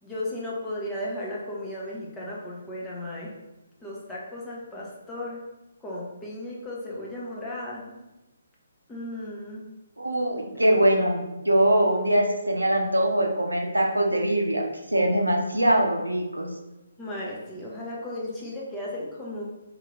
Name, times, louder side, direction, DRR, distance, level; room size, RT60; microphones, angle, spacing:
voice 1, 0.0-3.3 3.8-5.4 5.8-8.0 8.9-9.7 10.5-10.7 17.0-19.4, left 1 dB, 10° left, -5 dB, 0.9 m, -35 dB
voice 2, 10.0-14.6 14.9-16.5, right 1 dB, 80° right, 1 dB, 0.7 m, -22 dB
3.2 x 2.8 x 3.8 m, 1.0 s
figure-of-eight pair, 135°, 0 cm